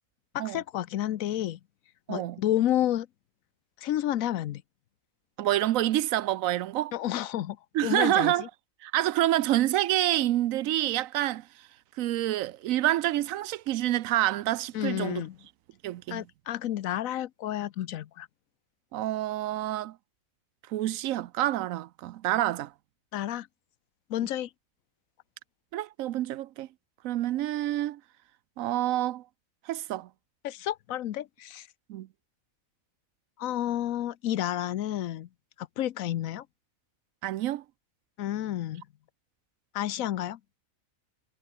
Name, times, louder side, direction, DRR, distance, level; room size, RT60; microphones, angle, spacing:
voice 1, 0.3-1.6 2.1-3.1 3.8-4.6 6.9-7.6 7.8-8.5 14.7-15.4 16.1-18.3 23.1-23.5 24.1-24.5 30.4-31.7 33.4-35.3 35.6-36.5 38.2-38.8 39.7-40.4, left 12 dB, 90° left, 1.1 m, -30 dB
voice 2, 2.1-2.4 5.4-6.9 7.7-8.5 8.8-11.5 12.0-15.2 15.8-16.2 18.9-20.0 20.7-22.7 25.7-26.7 27.0-28.0 28.6-29.2 29.7-30.1 31.9-32.1 37.2-37.6, right 14 dB, 80° right, 1.0 m, -27 dB
omnidirectional pair, 1.4 m